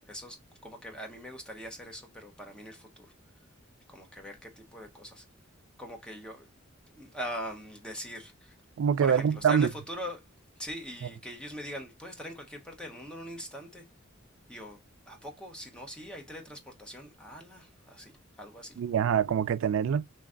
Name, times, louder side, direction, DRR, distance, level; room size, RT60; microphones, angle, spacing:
voice 1, 0.6-3.1 3.9-5.2 5.8-6.5 6.9-8.5 9.0-10.2 10.6-13.8 14.5-14.8 15.1-18.8, equal, 5° left, 0.8 m, -42 dB
voice 2, 8.8-9.7 18.8-20.0, right 8 dB, 70° right, 0.3 m, -25 dB
3.2 x 2.3 x 3.7 m
head